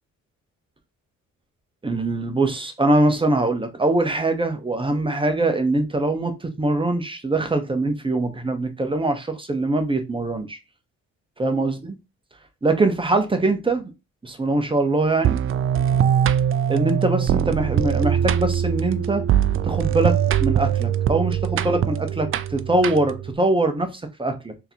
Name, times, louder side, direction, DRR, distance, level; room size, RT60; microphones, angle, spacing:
voice 1, 1.8-10.6 11.4-12.0 12.6-13.9 14.2-15.4 16.7-19.2 19.6-24.5, right 2 dB, 15° right, 0.8 m, -22 dB
sound 1, 15.2-23.3, right 9 dB, 45° right, 0.4 m, -22 dB
3.7 x 2.9 x 2.7 m
cardioid pair, 90°, 30 cm